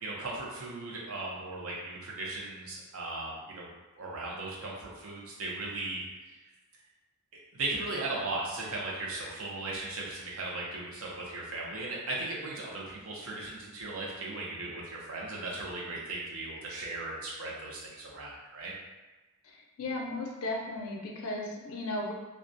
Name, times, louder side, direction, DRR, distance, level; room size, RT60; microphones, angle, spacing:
voice 1, 0.0-3.7 4.0-6.0 7.5-18.7, right 2 dB, 75° right, -4 dB, 0.6 m, -37 dB
voice 2, 19.8-22.1, left 2 dB, 65° left, 0 dB, 0.4 m, -35 dB
2.3 x 2.1 x 2.5 m, 1.2 s
head